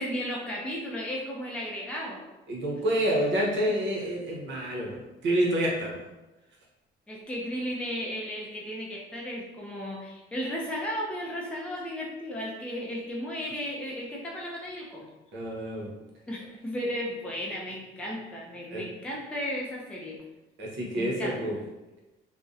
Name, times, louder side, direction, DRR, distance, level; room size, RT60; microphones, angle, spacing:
voice 1, 0.0-2.2 7.1-15.1 16.3-20.2 20.9-21.6, equal, 5° left, -3 dB, 0.4 m, -34 dB
voice 2, 2.5-5.9 15.3-15.9 18.7-18.8 20.6-21.6, right 1 dB, 70° right, -2 dB, 0.8 m, -28 dB
2.6 x 2.1 x 2.4 m, 1.0 s
cardioid pair, 90°, 20 cm